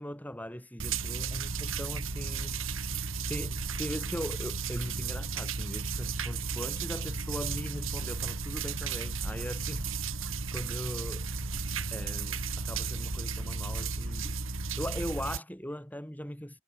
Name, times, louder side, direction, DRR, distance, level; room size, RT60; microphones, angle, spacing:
voice 1, 0.0-2.6 3.3-9.8 10.5-11.3 11.9-16.6, equal, 10° left, 7.5 m, -40 dB
sound 1, 0.8-15.4, right 4 dB, 70° right, 2.8 m, -34 dB
head